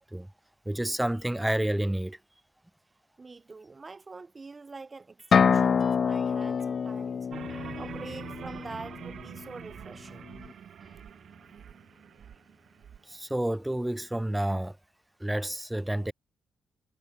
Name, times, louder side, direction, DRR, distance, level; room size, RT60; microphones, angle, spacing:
voice 1, 0.7-2.2 13.1-14.8 15.2-16.1, right 1 dB, 10° right, 2.3 m, -29 dB
voice 2, 3.2-7.3 7.7-10.3 13.1-13.2, right 4 dB, 35° right, 1.9 m, -45 dB
sound 1, 5.2-14.7, left 2 dB, 25° left, 6.5 m, -61 dB
sound 2, 5.3-9.1, left 6 dB, 50° left, 0.6 m, -26 dB
sound 3, 7.3-13.0, right 8 dB, 60° right, 4.7 m, -45 dB
hypercardioid pair, 40°, 0 cm